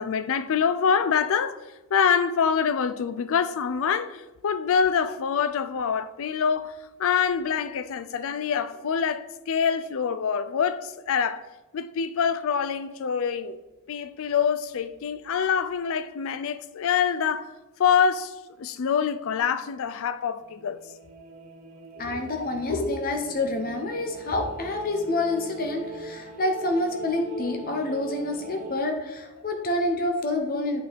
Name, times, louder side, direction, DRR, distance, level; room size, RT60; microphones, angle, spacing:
voice 1, 0.0-1.6 1.9-6.7 7.0-11.4 11.7-13.6 13.9-17.5 17.8-20.8, left 7 dB, 65° left, 0.4 m, -25 dB
sound 1, 20.4-28.8, right 2 dB, 35° right, 0.8 m, -42 dB
voice 2, 22.0-30.8, left 2 dB, 40° left, 0.8 m, -27 dB
8.6 x 4.5 x 3.5 m
head